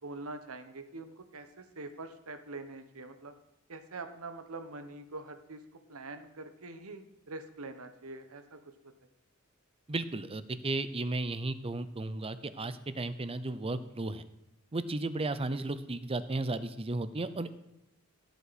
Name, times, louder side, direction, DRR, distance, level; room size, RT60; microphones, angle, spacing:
voice 1, 0.0-3.3 3.7-5.6 5.9-8.9, right 3 dB, 70° right, 9 dB, 1.1 m, -44 dB
voice 2, 9.9-14.2 14.7-17.6, right 2 dB, 25° right, 13 dB, 0.6 m, -34 dB
16.0 x 8.2 x 4.2 m, 0.86 s
head